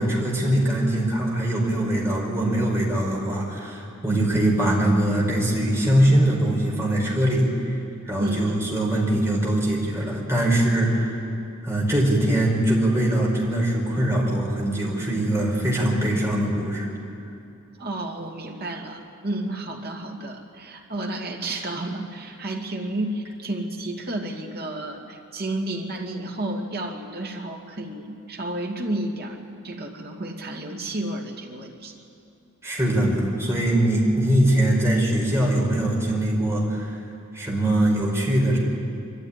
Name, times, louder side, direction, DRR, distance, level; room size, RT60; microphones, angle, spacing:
voice 1, 0.0-7.5 8.0-11.2 11.6-16.9 32.6-37.0 37.3-38.6, right 1 dB, 15° right, -3 dB, 4.8 m, -22 dB
voice 2, 8.2-8.6 17.8-29.4 29.6-31.9, right 1 dB, 50° right, 0 dB, 2.5 m, -31 dB
23.5 x 13.5 x 10.0 m, 2.6 s
head